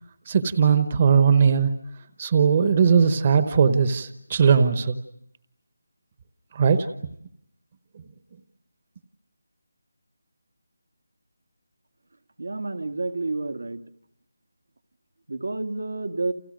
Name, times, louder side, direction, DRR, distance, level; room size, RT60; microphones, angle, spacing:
voice 1, 0.3-1.7 2.2-5.0 6.5-6.9, right 6 dB, 25° right, 11 dB, 1.0 m, -19 dB
voice 2, 12.4-13.8 15.3-16.3, right 3 dB, 75° right, 7 dB, 1.9 m, -29 dB
29.5 x 29.5 x 6.4 m, 0.75 s
figure-of-eight pair, 175°, 0 cm